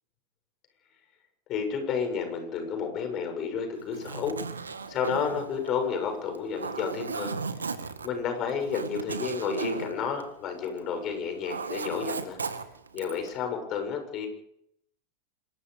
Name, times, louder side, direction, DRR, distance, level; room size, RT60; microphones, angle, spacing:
voice 1, 1.5-4.4 4.9-7.3 8.0-12.4 12.9-14.3, left 6 dB, 35° left, 5 dB, 6.9 m, -31 dB
Zipper (clothing), 3.8-10.9 11.2-13.3, right 5 dB, 75° right, 1.9 m, -36 dB
26.5 x 22.5 x 5.1 m, 0.73 s
figure-of-eight pair, 90°, 0 cm